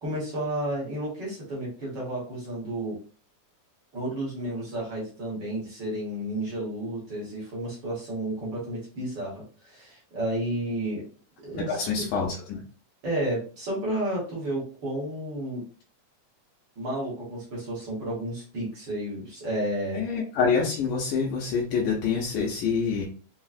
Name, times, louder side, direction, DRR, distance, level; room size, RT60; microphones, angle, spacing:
voice 1, 0.0-3.0 3.9-11.0 11.4-11.9 13.0-15.6 16.8-20.0, right 1 dB, 55° right, -5 dB, 1.2 m, -32 dB
voice 2, 11.5-12.6 19.9-23.1, left 5 dB, 90° left, -2 dB, 2.2 m, -26 dB
5.1 x 2.0 x 2.4 m, 0.40 s
omnidirectional pair, 3.5 m